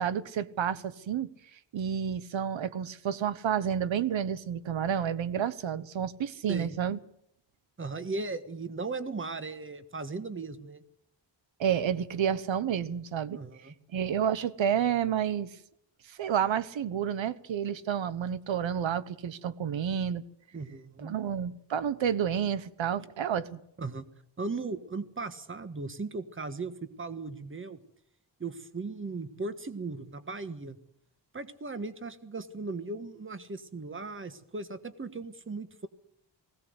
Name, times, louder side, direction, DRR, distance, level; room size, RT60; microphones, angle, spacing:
voice 1, 0.0-7.0 11.6-13.4 13.9-15.5 16.1-20.2 21.0-23.6, right 8 dB, 90° right, 1.1 m, -30 dB
voice 2, 7.8-10.8 13.3-13.7 20.5-21.2 23.8-24.1 24.4-27.8 28.4-30.8 31.3-35.9, right 3 dB, 25° right, 1.5 m, -37 dB
20.0 x 17.0 x 8.0 m
wide cardioid pair, 150°, 45 cm